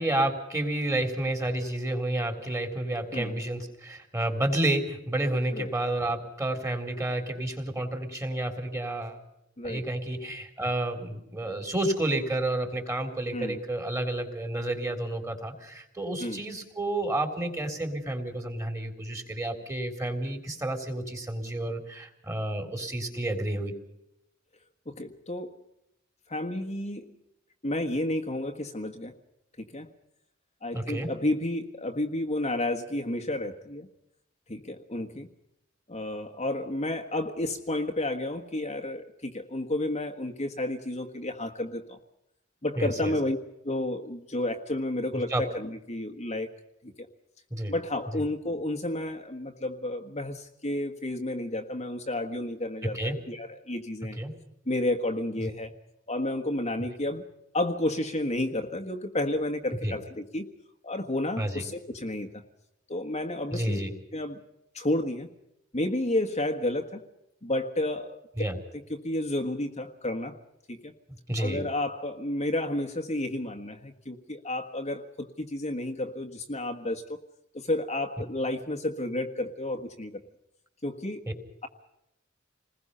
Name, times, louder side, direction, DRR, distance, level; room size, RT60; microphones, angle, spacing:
voice 1, 0.0-9.2 9.6-23.7 30.7-31.1 42.8-43.1 45.1-45.4 47.5-47.7 48.1-48.2 52.9-53.2 54.2-54.3 55.4-55.5 59.8-59.9 61.4-61.6 63.5-63.9 68.4-68.6 71.3-71.6, right 1 dB, 15° right, 5 dB, 3.8 m, -30 dB
voice 2, 24.9-25.5 26.3-27.2 27.6-29.1 29.6-29.9 30.6-33.9 34.5-35.3 35.9-42.0 42.6-43.4 43.6-46.5 46.8-46.9 47.7-54.2 54.7-55.8 56.1-57.3 57.5-60.5 60.8-62.4 62.9-63.8 64.1-64.4 64.7-65.3 65.7-67.0 67.4-68.2 69.0-70.4 70.7-70.9 71.4-77.0 77.5-80.2 80.8-81.3, left 1 dB, 35° left, 4 dB, 1.5 m, -31 dB
29.0 x 20.5 x 5.6 m, 0.85 s
head